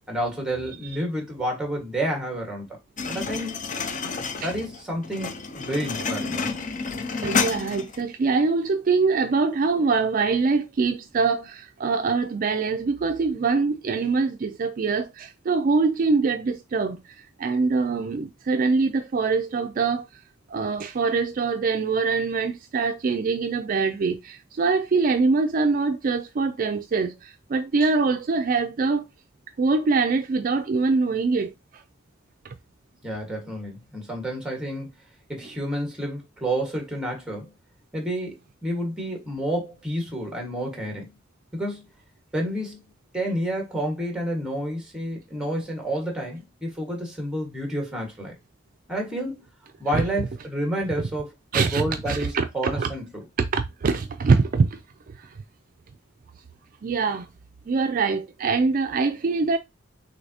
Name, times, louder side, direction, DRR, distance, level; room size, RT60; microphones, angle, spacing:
voice 1, 0.1-2.7 3.1-3.5 4.4-6.5 33.0-34.9 35.3-37.5 37.9-41.1 41.5-41.9 42.3-42.8 43.1-48.3 48.9-49.4 49.8-53.2, right 1 dB, 5° right, 1.5 m, -29 dB
sound 1, 3.0-8.0, left 5 dB, 40° left, 0.6 m, -29 dB
voice 2, 7.2-17.0 17.4-20.0 20.5-27.1 27.5-29.0 29.6-31.5 49.9-50.0 51.5-52.9 53.5-54.7 56.8-57.3 57.7-59.6, right 4 dB, 45° right, 0.4 m, -23 dB
6.5 x 2.7 x 2.7 m
head